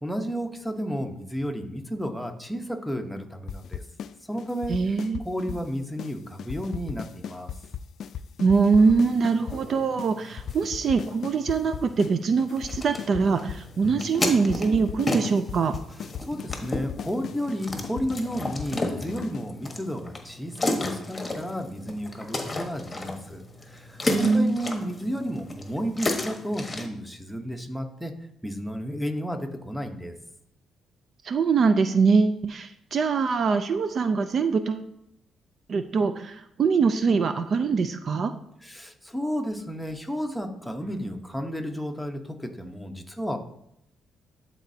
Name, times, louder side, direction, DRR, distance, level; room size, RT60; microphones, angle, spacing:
voice 1, 0.0-3.8 4.3-4.8 5.2-7.5 16.2-28.1 28.4-30.1 38.6-43.4, equal, ahead, 4 dB, 1.0 m, -32 dB
sound 1, 3.5-4.1 4.4-5.7 6.0-6.1 6.4-9.6 10.0-10.1 10.4-12.1 12.4-13.7 14.0-14.1 14.4-19.5, left 8 dB, 65° left, 0.3 m, -37 dB
voice 2, 4.7-5.2 5.5-5.6 8.4-15.7 24.1-24.6 31.2-34.9 35.7-38.3, right 5 dB, 50° right, 9 dB, 0.4 m, -23 dB
sound 2, 8.7-26.9, left 2 dB, 20° left, 1.2 m, -34 dB
12.5 x 4.2 x 2.8 m, 0.78 s
cardioid pair, 90°, 0 cm